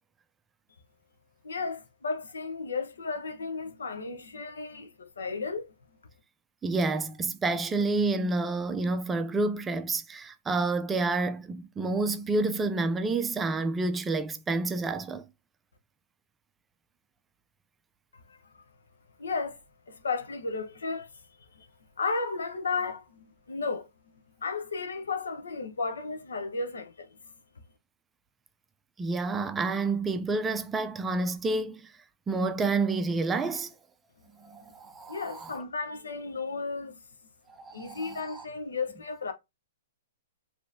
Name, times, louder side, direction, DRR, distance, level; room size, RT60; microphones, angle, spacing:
voice 1, 1.4-5.7 18.1-18.4 19.2-19.6 19.9-21.1 21.5-21.7 22.0-23.9 24.4-27.1 34.6-34.7 35.1-37.0 37.7-39.3, left 4 dB, 90° left, 1.0 m, -34 dB
voice 2, 6.6-15.2 29.0-31.9 32.3-33.7 34.4-35.6 37.6-38.4, right 3 dB, 15° right, 0.5 m, -29 dB
5.1 x 3.1 x 2.7 m
hypercardioid pair, 135°, 0 cm